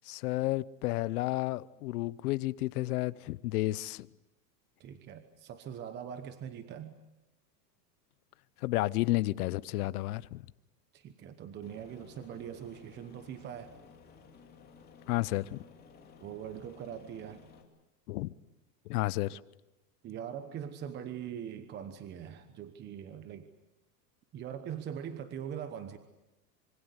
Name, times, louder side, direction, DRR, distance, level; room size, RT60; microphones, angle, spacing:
voice 1, 0.1-4.1 8.6-10.5 15.1-15.6 18.1-18.3 18.9-19.4, left 18 dB, 60° left, 0.9 m, -31 dB
voice 2, 4.8-7.0 10.9-13.8 16.2-17.4 20.0-23.5 24.3-26.0, right 9 dB, 20° right, 1.0 m, -42 dB
Aircraft, 11.6-17.6, left 5 dB, 20° left, 2.9 m, -56 dB
26.0 x 24.0 x 8.1 m
supercardioid pair, 160°, 50 cm